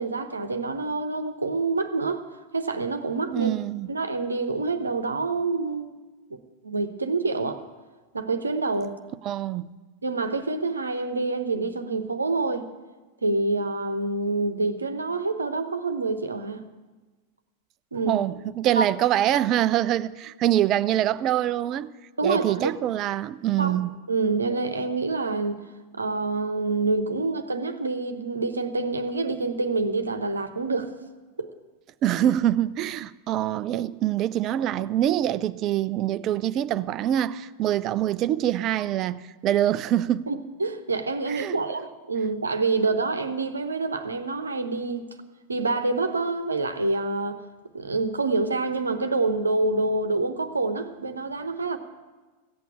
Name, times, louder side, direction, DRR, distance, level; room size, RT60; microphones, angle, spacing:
voice 1, 0.0-2.2 2.5-3.5 3.9-6.0 6.3-7.6 8.1-9.0 10.0-12.7 13.2-16.6 17.9-18.2 18.7-18.9 22.2-22.7 23.6-23.8 24.1-25.6 25.9-30.9 31.4-31.5 40.3-45.1 45.5-47.4 47.7-51.8, right 3 dB, 75° right, 1.0 m, -27 dB
voice 2, 3.3-3.9 9.2-9.7 18.1-21.9 22.2-23.9 32.0-40.3 41.3-41.6, right 12 dB, 35° right, 0.5 m, -25 dB
15.5 x 8.3 x 8.7 m
figure-of-eight pair, 90°, 0 cm